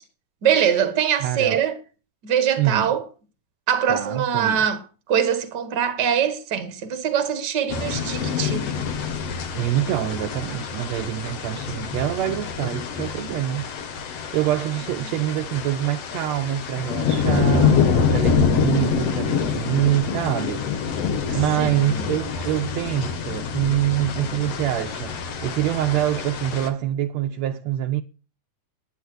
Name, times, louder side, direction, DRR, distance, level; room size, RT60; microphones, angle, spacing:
voice 1, 0.4-1.8 2.2-3.0 3.7-4.8 5.1-8.8 18.4-18.7 21.3-22.1, right 8 dB, 45° right, 1.5 m, -23 dB
voice 2, 1.2-1.6 2.6-2.9 3.9-4.6 9.5-13.7 14.0-17.8 18.1-20.7 21.3-25.1 25.4-28.0, right 13 dB, 80° right, 1.5 m, -25 dB
sound 1, 7.7-26.7, left 6 dB, 55° left, 2.2 m, -26 dB
10.5 x 9.8 x 6.3 m
omnidirectional pair, 3.8 m